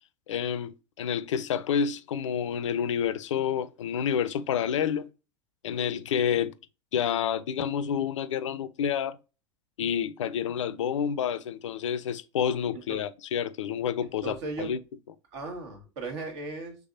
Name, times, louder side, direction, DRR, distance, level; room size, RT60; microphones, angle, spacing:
voice 1, 0.3-5.1 5.6-6.5 6.9-9.2 9.8-14.8, left 8 dB, 75° left, 0.4 m, -29 dB
voice 2, 14.0-14.7 15.3-16.8, right 3 dB, 65° right, 1.4 m, -37 dB
3.4 x 3.3 x 2.5 m
hypercardioid pair, 90°, 16 cm